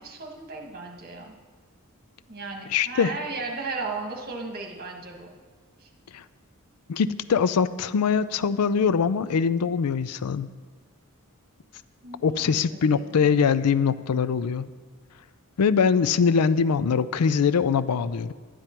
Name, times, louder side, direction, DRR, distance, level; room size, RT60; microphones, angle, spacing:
voice 1, 0.0-1.3 2.3-5.3 5.8-5.9 12.0-13.4, right 3 dB, 45° right, 2 dB, 1.5 m, -36 dB
voice 2, 2.7-3.1 6.1-6.2 6.9-10.5 12.2-14.7 15.6-18.3, left 6 dB, 90° left, 15 dB, 0.4 m, -23 dB
11.0 x 9.8 x 4.5 m, 1.5 s
head